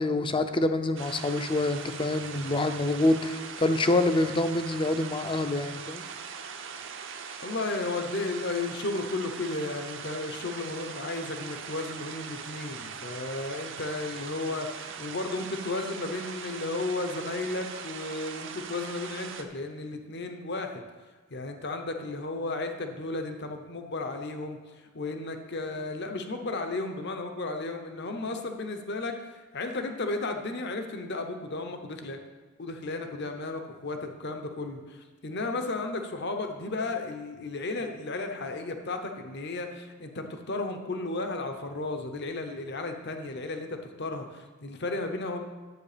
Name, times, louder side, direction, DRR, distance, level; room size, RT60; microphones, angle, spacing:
voice 1, 0.0-6.1, left 2 dB, 25° left, 9 dB, 0.6 m, -26 dB
sound 1, 1.0-19.4, right 6 dB, 65° right, 0.9 m, -41 dB
voice 2, 7.0-20.8 21.3-32.2 32.6-45.4, left 2 dB, 55° left, 6 dB, 0.9 m, -34 dB
11.0 x 8.0 x 5.1 m, 1.3 s
head